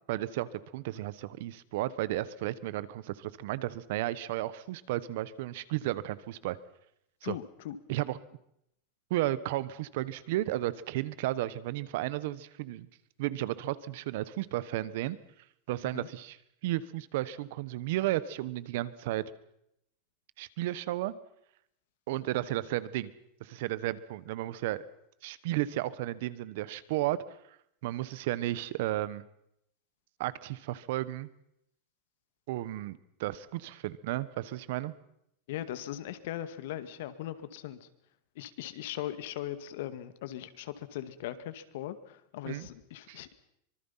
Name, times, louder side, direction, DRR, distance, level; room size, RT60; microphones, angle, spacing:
voice 1, 0.1-6.6 7.2-7.3 7.9-8.2 9.1-12.9 13.2-15.2 15.7-16.4 16.6-19.2 20.4-21.1 22.1-23.1 23.4-24.8 25.2-27.2 27.8-29.2 30.2-31.3 32.5-34.9 42.4-42.7 43.1-43.2, right 15 dB, 65° right, 18 dB, 1.3 m, -33 dB
voice 2, 7.2-7.8 15.8-16.1 35.5-37.9 38.4-43.3, left 12 dB, 70° left, 12 dB, 2.1 m, -39 dB
25.0 x 24.0 x 5.8 m, 0.75 s
supercardioid pair, 155°, 0 cm